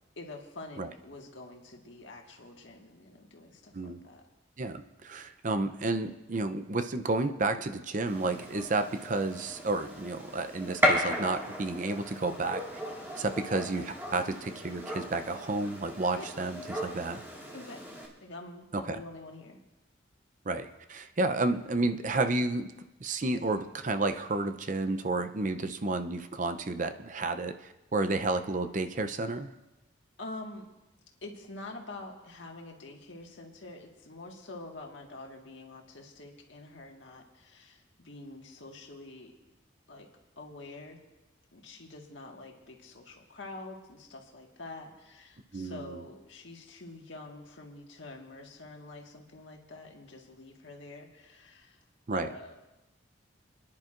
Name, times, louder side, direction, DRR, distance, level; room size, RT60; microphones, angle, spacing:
voice 1, 0.2-4.2 13.7-13.9 16.1-16.3 17.5-19.6 30.2-30.7 31.2-39.3 39.9-40.1 40.4-41.0 41.5-51.8 52.1-52.7, left 2 dB, 75° left, 1 dB, 1.7 m, -46 dB
voice 2, 4.6-12.6 13.2-17.2 18.7-19.0 20.5-22.7 23.0-27.5 27.9-29.5 45.5-46.0 52.1-52.3, right 2 dB, 40° right, 9 dB, 0.6 m, -31 dB
Gunshot gunfire, 8.1-18.1, equal, 10° right, 1.9 m, -35 dB
29.0 x 10.5 x 2.5 m, 1.0 s
head